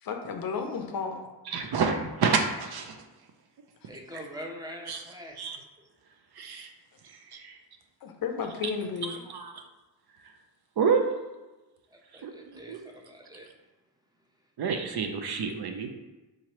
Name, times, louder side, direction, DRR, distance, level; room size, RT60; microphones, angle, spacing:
voice 1, 0.0-1.2 8.0-9.2, left 5 dB, 55° left, 4 dB, 0.5 m, -33 dB
voice 2, 1.5-3.0 4.9-5.0 5.4-5.6 6.4-6.7 7.0-7.6 9.0-9.5 10.8-11.1 12.2-12.8 14.6-15.9, right 5 dB, 60° right, 5 dB, 0.5 m, -29 dB
voice 3, 3.9-5.3 11.9-13.5, equal, 10° right, 0 dB, 0.7 m, -43 dB
3.7 x 2.9 x 3.0 m, 1.1 s
cardioid pair, 65°, 44 cm